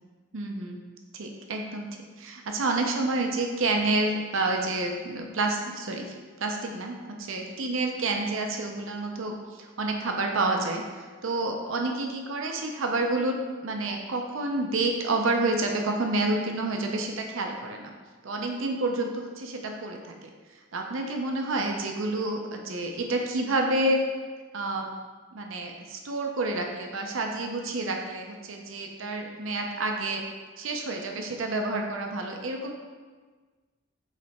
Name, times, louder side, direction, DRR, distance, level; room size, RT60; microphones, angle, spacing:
voice 1, 0.3-0.8 1.1-1.9 2.2-17.9 18.2-20.3 20.7-24.0 24.5-24.9 25.3-30.2 30.6-32.7, right 2 dB, 70° right, 2 dB, 0.6 m, -29 dB
8.0 x 3.4 x 4.2 m, 1.4 s
head